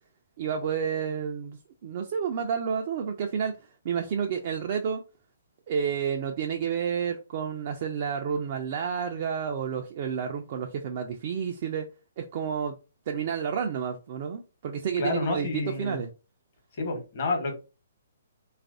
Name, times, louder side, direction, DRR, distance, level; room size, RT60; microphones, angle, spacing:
voice 1, 0.4-3.5 3.8-5.0 5.7-11.9 12.2-12.7 13.1-16.1, right 7 dB, 45° right, 0.4 m, -30 dB
voice 2, 15.0-16.0 16.7-17.6, left 3 dB, 50° left, 1.0 m, -29 dB
3.2 x 2.4 x 2.5 m
figure-of-eight pair, 125°, 0 cm